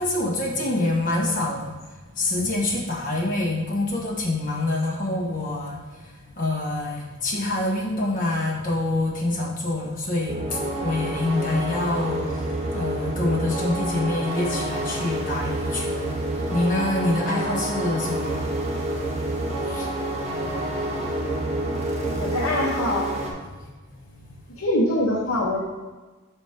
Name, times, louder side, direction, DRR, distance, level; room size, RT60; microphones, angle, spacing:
voice 1, 0.0-1.7 2.1-12.5 12.7-18.5 19.2-19.3 19.6-19.9 23.4-23.6 23.9-24.3, left 2 dB, 40° left, -3 dB, 1.3 m, -26 dB
sound 1, 10.3-23.3, right 1 dB, 30° right, 0.9 m, -28 dB
voice 2, 22.0-23.0 24.6-25.6, left 1 dB, 85° left, -5 dB, 0.9 m, -24 dB
5.1 x 4.5 x 4.9 m, 1.3 s
head